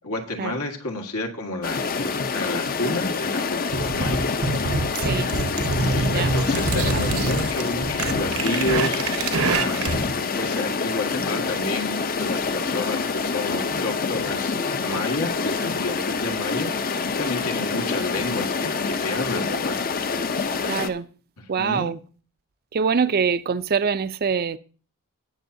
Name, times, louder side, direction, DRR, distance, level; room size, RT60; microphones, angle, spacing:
voice 1, 0.0-4.3 5.9-10.1 10.4-19.8 21.4-21.9, left 2 dB, 80° left, 1.8 m, -30 dB
sound 1, 1.6-20.9, left 4 dB, 40° left, 0.7 m, -26 dB
sound 2, 3.7-10.1, right 3 dB, 75° right, 1.1 m, -25 dB
voice 2, 6.0-6.3 6.7-7.1 20.7-21.1 21.5-22.0 22.7-24.6, right 6 dB, 45° right, 0.5 m, -24 dB
18.0 x 7.0 x 2.7 m
head